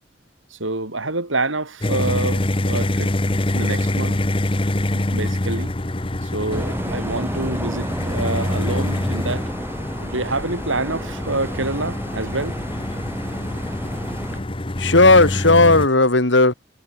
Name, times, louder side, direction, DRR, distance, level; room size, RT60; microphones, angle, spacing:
voice 1, 0.5-3.1 3.5-4.2 4.9-5.7 6.2-9.5 10.0-12.6, right 2 dB, 85° right, 5.6 m, -27 dB
sound 1, 1.8-15.9, left 1 dB, 25° left, 1.1 m, -25 dB
sound 2, 6.5-14.4, equal, 10° right, 3.8 m, -30 dB
voice 2, 14.8-16.5, left 2 dB, 70° left, 2.6 m, -14 dB
head